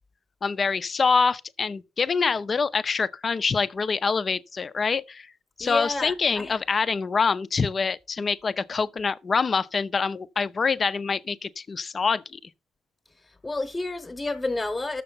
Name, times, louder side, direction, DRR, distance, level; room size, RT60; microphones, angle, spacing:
voice 1, 0.4-5.3 5.6-12.4, left 5 dB, 40° left, 0.6 m, -25 dB
voice 2, 5.6-6.5 13.3-15.0, left 2 dB, 20° left, 1.1 m, -30 dB
6.8 x 6.7 x 5.3 m
cardioid pair, 90°, 0 cm